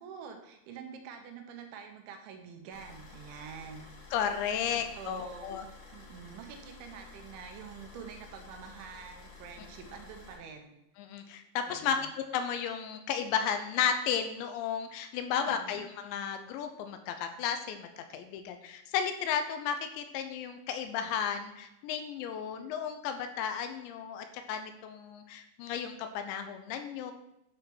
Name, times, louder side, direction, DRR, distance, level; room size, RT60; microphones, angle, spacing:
voice 1, 0.0-3.9 4.6-5.5 5.9-10.8 11.7-12.1 15.3-15.8, right 6 dB, 80° right, 4 dB, 3.5 m, -46 dB
sound 1, 2.7-10.3, left 3 dB, 65° left, 5.8 m, -52 dB
voice 2, 4.1-5.7 11.0-12.0 12.3-17.9 18.1-27.1, left 8 dB, 80° left, 7 dB, 2.9 m, -33 dB
11.5 x 5.1 x 6.2 m, 0.84 s
omnidirectional pair, 5.4 m